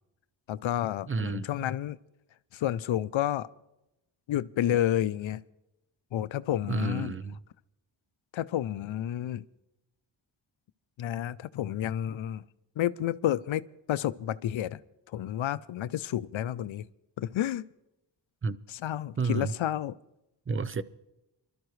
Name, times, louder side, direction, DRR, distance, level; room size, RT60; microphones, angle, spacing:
voice 1, 0.5-2.0 2.5-3.5 4.3-5.4 6.1-7.1 8.3-9.4 11.0-12.4 12.8-14.8 15.1-16.9 17.2-17.6 18.7-19.9, left 12 dB, 85° left, 0.5 m, -30 dB
voice 2, 1.1-1.5 6.7-7.4 18.4-18.6 19.2-19.5 20.5-20.8, right 4 dB, 30° right, 0.6 m, -30 dB
25.0 x 13.0 x 3.1 m
wide cardioid pair, 90°, 46 cm